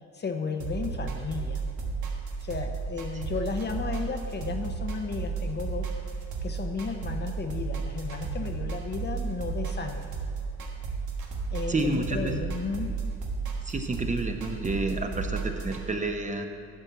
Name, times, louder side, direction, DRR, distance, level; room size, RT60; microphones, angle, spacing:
voice 1, 0.1-1.6 2.4-5.9 6.4-10.0 11.5-12.9, left 4 dB, 35° left, 5 dB, 0.8 m, -33 dB
sound 1, 0.6-15.8, right 5 dB, 75° right, 1.5 m, -33 dB
voice 2, 11.7-12.4 13.6-16.5, right 2 dB, 25° right, 5 dB, 0.9 m, -30 dB
11.5 x 4.4 x 8.1 m, 2.3 s
cardioid pair, 90°, 30 cm